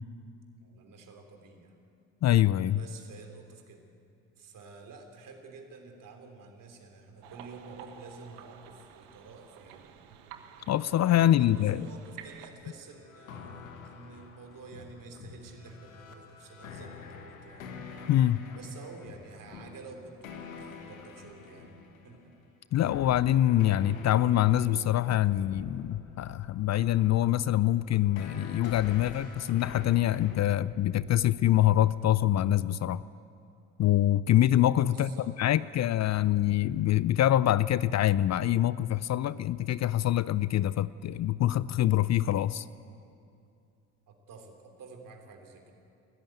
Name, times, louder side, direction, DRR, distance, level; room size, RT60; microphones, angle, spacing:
voice 1, 0.6-1.8 2.7-3.8 4.3-9.8 11.1-17.8 18.5-21.7 22.0-22.4 34.9-35.8 44.1-45.7, right 4 dB, 55° right, 4 dB, 3.3 m, -50 dB
voice 2, 2.2-2.8 10.7-11.8 18.1-18.5 22.7-33.0 33.8-35.1 35.4-42.7, left 13 dB, 45° left, 18 dB, 0.5 m, -25 dB
sound 1, 7.2-12.5, right 9 dB, 75° right, 1.4 m, -50 dB
sound 2, 12.4-22.2 22.9-30.5, left 5 dB, 90° left, 1.6 m, -46 dB
20.0 x 14.0 x 9.2 m, 2.5 s
hypercardioid pair, 55°, 39 cm